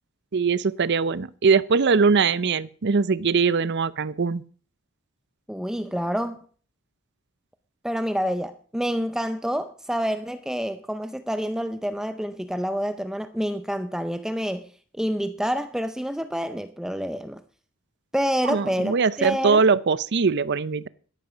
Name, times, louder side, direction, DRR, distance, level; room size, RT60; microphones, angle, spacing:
voice 1, 0.3-4.4 18.4-20.9, right 5 dB, 50° right, 0.6 m, -21 dB
voice 2, 5.5-6.4 7.8-14.7 15.0-17.4 18.1-19.6, equal, 5° right, 0.6 m, -28 dB
12.5 x 11.5 x 5.1 m
head